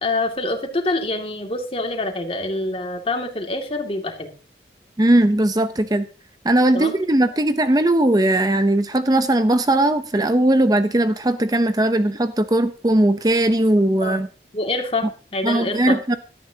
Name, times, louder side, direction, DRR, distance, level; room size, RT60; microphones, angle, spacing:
voice 1, 0.0-4.3 6.7-6.9 14.0-14.2 14.5-16.0, left 2 dB, 30° left, 4 dB, 2.3 m, -26 dB
voice 2, 5.0-6.0 6.4-14.3 15.4-16.2, right 1 dB, 20° right, 10 dB, 0.7 m, -18 dB
17.0 x 12.5 x 2.8 m, 0.38 s
head